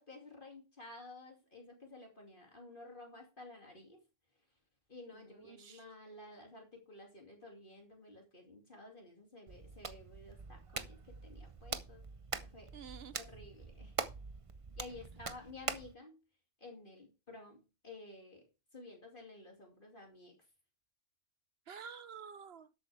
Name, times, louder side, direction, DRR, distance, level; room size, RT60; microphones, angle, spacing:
voice 1, 0.0-4.0 4.9-12.1 12.4-12.8 13.1-14.0 14.8-16.2 16.6-20.4, left 2 dB, 45° left, 2.8 m, -53 dB
voice 2, 5.1-5.9 12.7-13.2 21.7-22.7, right 6 dB, 60° right, 1.0 m, -50 dB
Hands, 9.5-15.9, right 4 dB, 30° right, 0.7 m, -44 dB
12.0 x 8.4 x 3.4 m
omnidirectional pair, 1.2 m